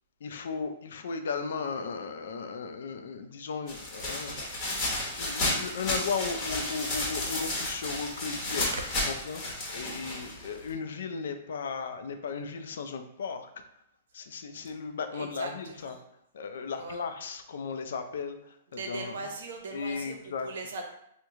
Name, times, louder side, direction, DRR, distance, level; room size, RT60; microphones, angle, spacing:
voice 1, 0.2-4.4 4.8-8.7 9.1-9.4 9.7-13.5 14.1-15.9 16.3-18.5 18.9-19.2 19.7-20.5, left 5 dB, 75° left, 8 dB, 0.4 m, -36 dB
sound 1, 3.7-10.7, left 2 dB, 25° left, 1.0 m, -32 dB
voice 2, 15.1-16.0 16.7-17.0 18.7-20.8, right 3 dB, 75° right, 3 dB, 0.7 m, -39 dB
3.0 x 2.1 x 3.5 m, 0.75 s
hypercardioid pair, 160°, 0 cm